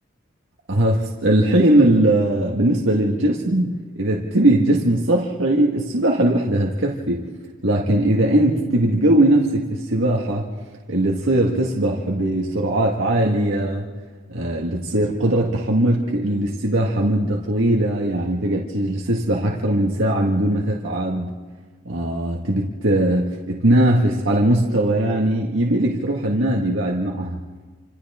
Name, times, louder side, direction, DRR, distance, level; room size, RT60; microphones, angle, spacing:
voice 1, 0.7-7.2 7.6-10.5 10.9-13.9 14.3-21.4 21.9-27.4, right 1 dB, 75° right, -2 dB, 1.8 m, -20 dB
28.0 x 26.5 x 3.7 m, 1.4 s
head